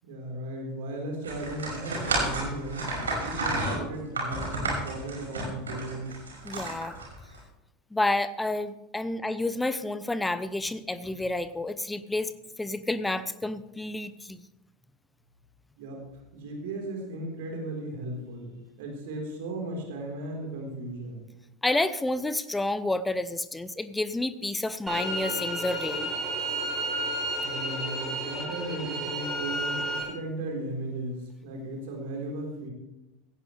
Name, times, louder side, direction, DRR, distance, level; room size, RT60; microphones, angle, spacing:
voice 1, 0.0-6.2 15.8-16.0 16.3-21.3 27.4-32.7, right 2 dB, 60° right, 0 dB, 4.1 m, -36 dB
sound 1, 1.2-7.4, right 2 dB, 75° right, 5.5 m, -31 dB
voice 2, 6.4-6.9 7.9-12.3 12.6-14.4 21.6-26.1, left 2 dB, 10° left, 14 dB, 0.7 m, -30 dB
sound 2, 24.9-30.0, right 1 dB, 20° right, 5.2 m, -31 dB
17.0 x 15.5 x 3.3 m, 0.95 s
figure-of-eight pair, 80°, 0 cm